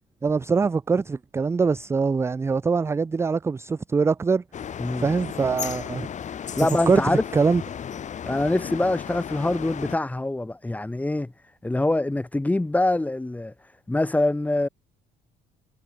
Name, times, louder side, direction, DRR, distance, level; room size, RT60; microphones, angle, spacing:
voice 1, 0.2-4.4 5.0-6.1 6.9-7.6, right 4 dB, 15° right, 0.4 m, -23 dB
sound 1, 4.5-10.0, left 8 dB, 45° left, 3.0 m, -34 dB
voice 2, 6.6-7.2 8.2-11.3 11.6-13.5 13.9-14.7, left 2 dB, 10° left, 1.2 m, -24 dB
cardioid pair, 110°, 17 cm